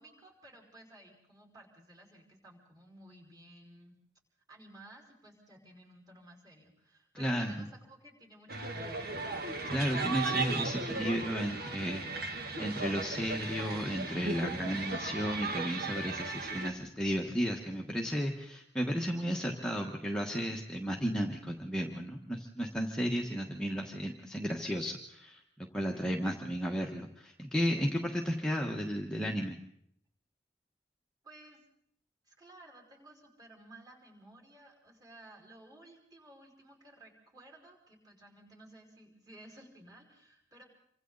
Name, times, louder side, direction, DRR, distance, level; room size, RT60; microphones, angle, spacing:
voice 1, 0.0-3.9 4.5-9.1 31.2-31.6 32.3-40.6, right 1 dB, 20° right, 0 dB, 5.5 m, -55 dB
voice 2, 7.2-7.7 9.7-29.6, equal, 5° left, 0 dB, 1.4 m, -34 dB
sound 1, 8.5-16.7, right 3 dB, 50° right, 2.4 m, -36 dB
27.5 x 25.0 x 4.1 m, 0.71 s
head